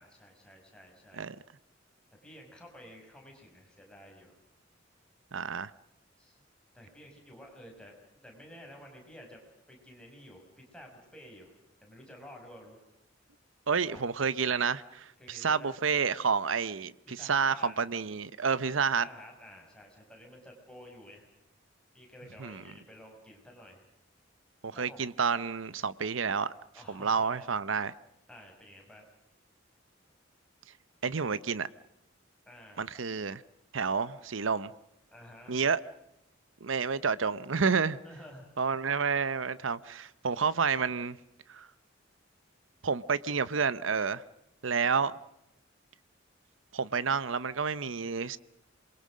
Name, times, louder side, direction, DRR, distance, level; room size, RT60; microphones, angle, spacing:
voice 1, 0.0-1.2 2.2-4.3 6.2-6.4 6.7-9.4 9.7-11.5 11.8-12.8 13.9-14.2 15.2-15.8 17.1-17.9 19.0-21.3 21.9-23.8 24.7-25.1 26.7-27.5 28.3-29.1 32.5-32.8 35.1-35.6 38.0-38.5, equal, 5° left, 6.2 m, -51 dB
voice 2, 5.3-5.7 13.7-19.1 22.4-22.6 24.6-26.5 26.9-27.9 31.0-31.7 32.8-33.4 33.7-34.7 35.5-35.8 36.6-38.0 38.6-41.2 41.5-41.7 42.8-44.2 44.6-45.2 46.7-48.4, right 5 dB, 80° right, 0.8 m, -29 dB
27.5 x 22.5 x 6.4 m
head